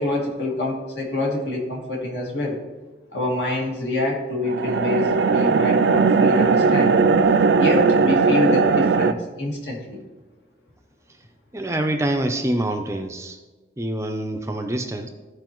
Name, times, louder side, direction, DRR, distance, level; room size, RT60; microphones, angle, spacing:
voice 1, 0.0-2.6 3.1-6.9 7.6-10.0, left 2 dB, 70° left, -3 dB, 2.1 m, -26 dB
sound 1, 4.5-9.1, right 4 dB, 70° right, 0.4 m, -18 dB
voice 2, 11.5-13.4 13.8-15.1, right 1 dB, 15° right, 6 dB, 0.5 m, -25 dB
14.0 x 4.8 x 3.0 m, 1.2 s
head